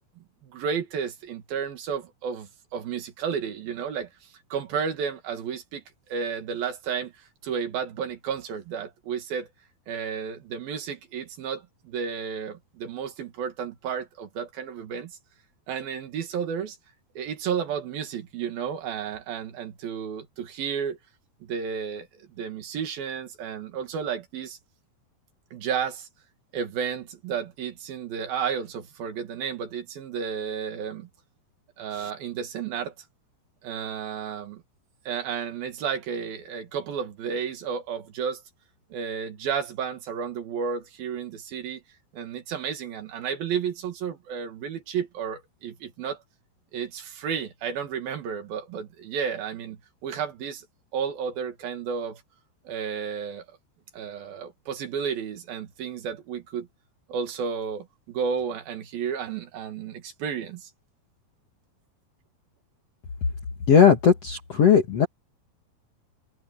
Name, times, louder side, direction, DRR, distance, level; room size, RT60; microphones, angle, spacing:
voice 1, 0.4-9.5 9.9-15.1 15.7-16.8 17.1-21.0 21.4-22.1 22.4-24.6 25.5-26.1 26.5-31.1 31.8-32.9 33.6-34.6 35.0-38.4 38.9-41.8 42.1-46.2 46.7-50.6 50.9-52.2 52.6-53.4 53.9-56.7 57.1-60.7, right 7 dB, 65° right, 3.5 m, -32 dB
voice 2, 63.7-65.1, left 7 dB, 55° left, 1.9 m, -17 dB
open air
omnidirectional pair, 4.9 m